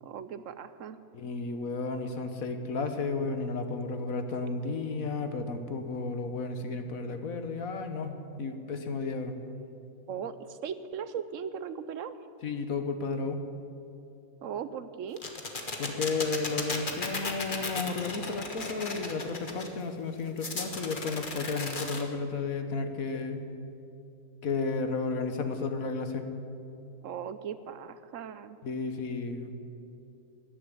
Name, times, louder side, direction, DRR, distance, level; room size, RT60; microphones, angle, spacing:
voice 1, 0.0-1.0 10.1-12.2 14.4-15.2 27.0-28.6, right 7 dB, 65° right, 13 dB, 1.0 m, -38 dB
voice 2, 1.1-9.3 12.4-13.4 15.8-23.5 24.4-26.3 28.6-29.5, left 4 dB, 75° left, 7 dB, 1.6 m, -33 dB
sound 1, 15.2-19.7 20.4-22.0, left 3 dB, 35° left, 1.5 m, -35 dB
14.0 x 10.5 x 9.7 m, 2.8 s
omnidirectional pair, 1.5 m